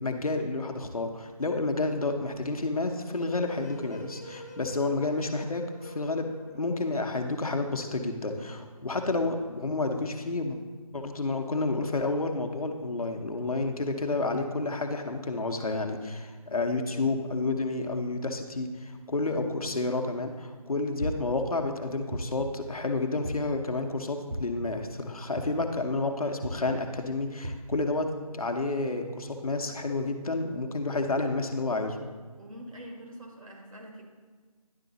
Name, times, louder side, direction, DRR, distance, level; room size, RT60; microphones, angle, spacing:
voice 1, 0.0-10.6 10.9-32.0, left 2 dB, 70° left, 4 dB, 0.9 m, -30 dB
sound 1, 3.4-7.8, left 1 dB, 25° left, 0.4 m, -46 dB
sound 2, 21.0-21.4 22.1-22.6 23.2-23.7 24.3-24.7 25.4-25.8 26.4-26.7 27.4-27.8, right 1 dB, 85° right, 0.8 m, -35 dB
voice 2, 32.4-34.0, equal, 60° right, 0 dB, 1.7 m, -45 dB
10.5 x 3.8 x 4.0 m, 1.5 s
figure-of-eight pair, 170°, 19 cm